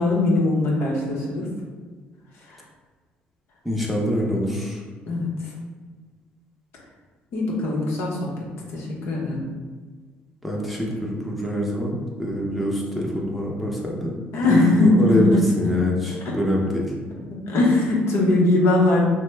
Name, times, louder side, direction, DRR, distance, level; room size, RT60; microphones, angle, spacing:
voice 1, 0.0-1.5 2.5-2.6 5.1-5.5 7.3-8.3 8.7-9.4 14.3-15.4 16.2-16.3 17.5-19.0, left 2 dB, 65° left, -3 dB, 0.8 m, -20 dB
voice 2, 3.6-4.8 10.4-14.1 14.4-14.5 14.8-16.9, equal, ahead, -3 dB, 0.7 m, -25 dB
2.8 x 2.1 x 3.3 m, 1.5 s
supercardioid pair, 65°, 5 cm